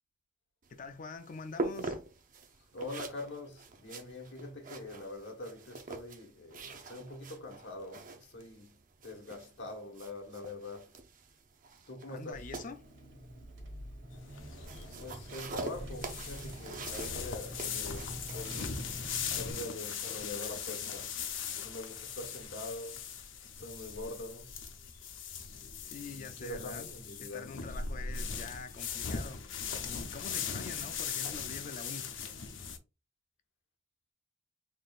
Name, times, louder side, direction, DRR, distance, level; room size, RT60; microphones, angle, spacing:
sound 1, 0.6-19.5, right 3 dB, 45° right, 0.6 m, -45 dB
voice 1, 0.7-2.0 12.1-12.8 25.8-26.9 27.2-29.4 29.8-32.1, left 4 dB, 45° left, 0.5 m, -45 dB
voice 2, 2.7-8.7 9.0-10.9 11.9-12.4 15.0-18.9 19.3-21.1 21.6-23.0 23.6-24.5 26.1-27.5, left 2 dB, 65° left, 1.2 m, -44 dB
Car / Engine, 12.3-19.5, equal, 75° right, 1.5 m, -46 dB
sound 2, 14.1-32.8, left 6 dB, 90° left, 0.7 m, -40 dB
3.7 x 3.7 x 2.4 m
head